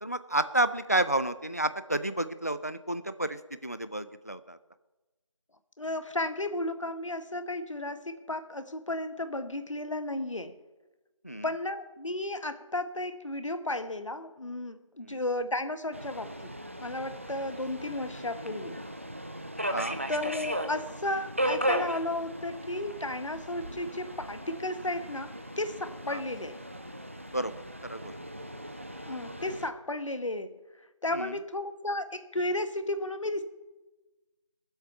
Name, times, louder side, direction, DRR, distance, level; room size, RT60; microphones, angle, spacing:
voice 1, 0.0-4.6 11.2-11.5 15.0-15.2 19.7-20.0 26.1-26.2 27.3-27.5 27.8-28.1 31.1-31.4, right 1 dB, 30° left, 13 dB, 0.4 m, -30 dB
voice 2, 5.8-10.6 11.4-18.8 20.1-26.6 29.1-30.6 31.0-33.4, left 1 dB, 75° left, 10 dB, 1.3 m, -34 dB
Subway metro underground, 15.9-29.7, right 1 dB, 25° right, 0.5 m, -37 dB
18.0 x 8.0 x 5.6 m, 1.1 s
figure-of-eight pair, 170°, 16 cm